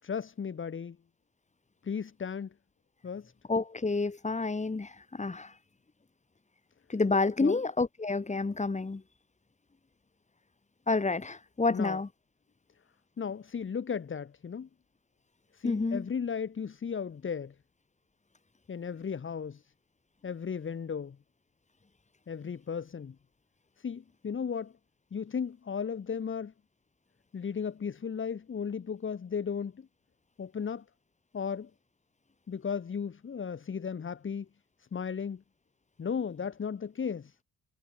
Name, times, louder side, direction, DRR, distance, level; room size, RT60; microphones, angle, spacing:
voice 1, 0.0-1.0 1.8-2.5 3.0-3.3 7.4-7.6 11.7-12.0 13.2-14.7 15.5-17.5 18.7-19.6 20.2-21.2 22.3-23.1 23.8-24.7 25.1-26.5 27.3-29.9 30.4-30.8 31.3-31.7 32.5-34.5 34.8-35.4 36.0-37.4, left 6 dB, 40° left, 3.4 m, -35 dB
voice 2, 3.5-5.5 6.9-9.0 10.9-12.1 15.6-16.1, left 3 dB, 25° left, 7.8 m, -29 dB
cardioid pair, 90°, 30 cm